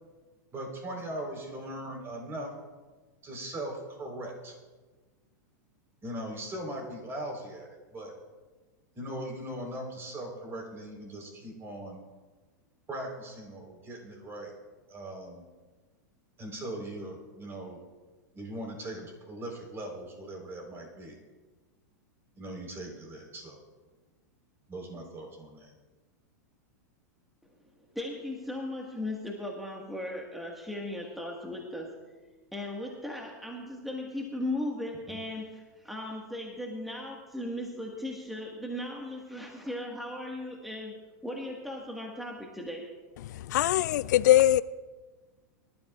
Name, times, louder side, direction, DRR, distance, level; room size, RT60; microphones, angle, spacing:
voice 1, 0.5-2.5 3.2-4.6 6.0-8.1 8.9-12.0 12.9-14.5 14.9-15.4 16.4-17.8 18.3-21.2 22.4-23.6 24.7-25.7 35.1-35.2, right 1 dB, 25° right, 3.9 m, -39 dB
voice 2, 27.9-31.9 32.5-40.9 41.2-42.8, left 1 dB, ahead, 1.6 m, -37 dB
voice 3, 43.5-44.6, left 14 dB, 75° left, 0.4 m, -21 dB
23.5 x 12.5 x 2.4 m
hypercardioid pair, 120°, 10 cm